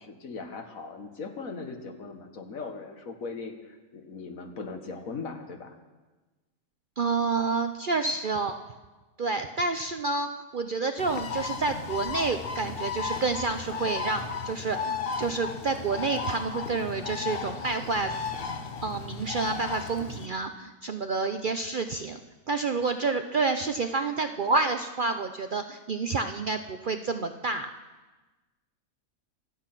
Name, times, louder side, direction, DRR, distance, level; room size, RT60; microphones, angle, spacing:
voice 1, 0.0-5.8, left 4 dB, 75° left, 5 dB, 2.0 m, -39 dB
voice 2, 7.0-8.6 9.2-18.1 18.8-22.2 22.5-27.7, right 4 dB, 55° right, 7 dB, 0.6 m, -29 dB
Bird, 11.0-20.3, left 5 dB, 45° left, 1.0 m, -34 dB
25.5 x 8.7 x 6.0 m, 1.2 s
omnidirectional pair, 1.5 m